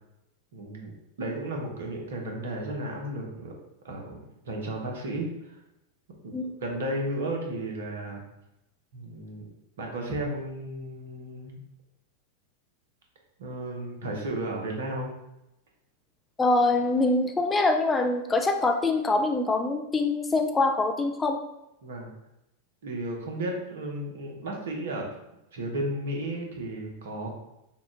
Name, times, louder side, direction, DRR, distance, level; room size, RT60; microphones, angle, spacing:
voice 1, 0.5-3.5 3.8-4.2 4.4-5.6 6.2-6.3 6.6-8.2 8.9-9.5 9.8-11.6 13.4-15.1 21.8-22.1 22.8-25.1 25.5-27.3, right 1 dB, 60° right, 1 dB, 1.0 m, -33 dB
voice 2, 16.4-21.4, left 2 dB, 15° left, 4 dB, 0.4 m, -24 dB
5.8 x 2.4 x 3.7 m, 0.89 s
figure-of-eight pair, 90°, 0 cm